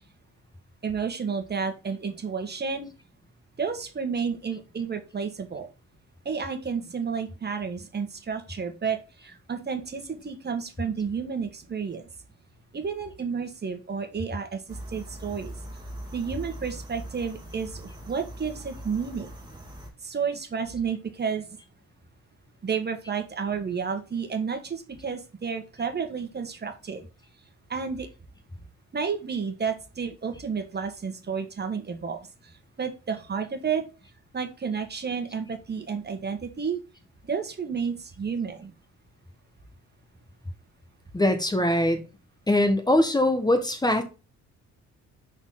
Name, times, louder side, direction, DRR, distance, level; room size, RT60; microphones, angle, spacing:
voice 1, 0.8-2.9 3.6-5.7 6.2-12.1 12.7-15.5 16.1-19.3 20.0-21.4 22.6-27.1 27.7-28.1 28.9-32.5 32.8-33.8 34.3-36.8 37.3-38.7, right 6 dB, 35° right, 1.4 m, -31 dB
sound 1, 14.7-19.9, right 1 dB, 15° right, 2.0 m, -41 dB
voice 2, 41.1-42.0 42.5-44.0, left 1 dB, 15° left, 1.1 m, -22 dB
5.9 x 4.2 x 3.8 m
cardioid pair, 90°, 30 cm